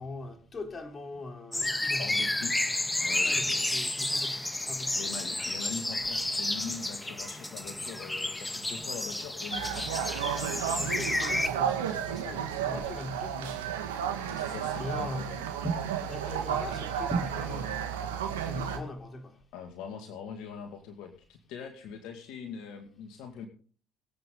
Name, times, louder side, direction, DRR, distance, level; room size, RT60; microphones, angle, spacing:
voice 1, 0.0-2.3 3.2-5.3 10.8-13.8 14.8-18.0 18.4-19.4, equal, 35° left, 3.7 m, -39 dB
sound 1, 1.5-11.5, left 1 dB, 15° left, 1.5 m, -31 dB
voice 2, 2.0-2.6 3.0-3.7 4.9-10.0 14.3-15.4 19.5-23.5, left 6 dB, 70° left, 2.2 m, -42 dB
sound 2, 9.5-18.8, right 8 dB, 90° right, 2.1 m, -33 dB
23.0 x 8.7 x 3.9 m
hypercardioid pair, 65°, 0 cm